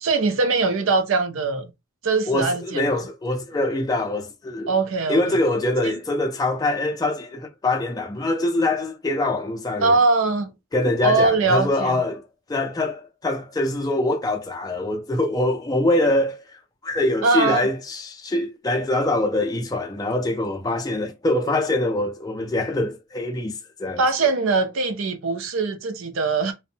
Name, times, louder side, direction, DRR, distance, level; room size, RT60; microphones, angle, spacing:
voice 1, 0.0-1.7 2.0-2.8 4.7-5.4 5.8-5.9 9.8-10.5 11.0-12.0 17.2-17.7 24.0-26.5, right 3 dB, 70° right, 0.5 m, -21 dB
voice 2, 2.3-4.7 5.1-10.0 10.7-24.0, left 2 dB, 15° left, 0.3 m, -24 dB
2.5 x 2.0 x 2.7 m
head